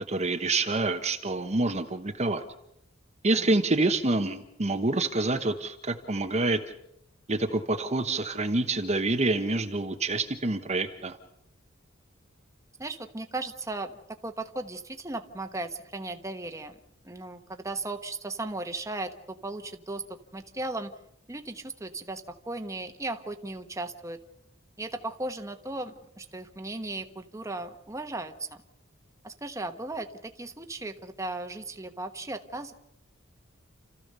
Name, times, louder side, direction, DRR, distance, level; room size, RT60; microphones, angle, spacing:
voice 1, 0.1-2.4 3.2-6.6 7.3-11.2, right 2 dB, 35° right, 5 dB, 1.1 m, -27 dB
voice 2, 12.8-16.8 17.0-20.9 21.3-24.2 24.8-28.6 29.2-32.7, right 2 dB, 15° right, 6 dB, 1.3 m, -36 dB
29.5 x 14.5 x 6.7 m, 0.81 s
head